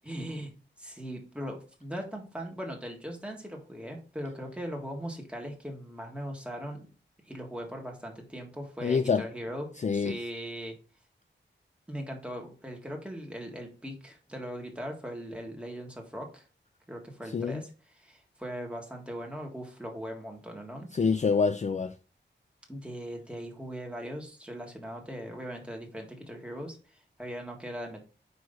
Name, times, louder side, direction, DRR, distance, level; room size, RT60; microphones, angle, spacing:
voice 1, 0.0-0.5 0.8-6.9 7.2-10.8 11.9-16.4 16.9-20.9 22.7-28.0, equal, 5° right, 1.7 m, -39 dB
voice 2, 8.8-9.2 9.8-10.2 17.3-17.6 20.9-21.9, left 5 dB, 40° left, 0.4 m, -26 dB
9.4 x 3.2 x 3.9 m
wide cardioid pair, 110°, 20 cm